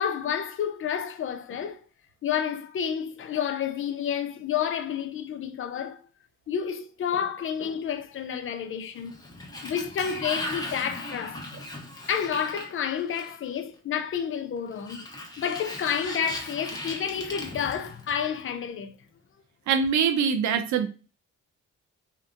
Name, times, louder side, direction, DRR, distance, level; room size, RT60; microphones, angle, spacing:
voice 1, 0.0-1.8 2.2-6.0 6.5-9.2 9.6-11.4 12.1-15.1 15.4-18.9, left 8 dB, 45° left, 0.4 m, -30 dB
Sliding door, 8.9-13.6 14.7-18.4, left 1 dB, 15° left, 0.8 m, -38 dB
voice 2, 19.7-20.9, right 6 dB, 70° right, 0.5 m, -23 dB
2.8 x 2.1 x 2.5 m
cardioid pair, 90°, 30 cm